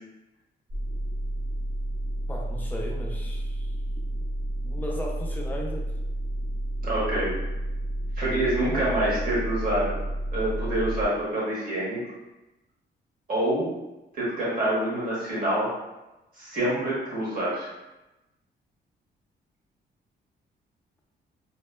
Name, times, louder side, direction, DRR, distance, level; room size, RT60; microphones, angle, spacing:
sound 1, 0.7-11.1, right 1 dB, 90° right, 1.0 m, -31 dB
voice 1, 2.3-3.7 4.6-5.9 8.7-8.9, left 1 dB, 10° left, -2 dB, 0.3 m, -36 dB
voice 2, 6.8-7.3 8.2-9.9 10.3-12.0 13.3-13.7 14.1-15.7 16.4-17.7, right 1 dB, 50° right, -7 dB, 1.1 m, -26 dB
2.8 x 2.2 x 2.2 m, 1.0 s
cardioid pair, 145°, 18 cm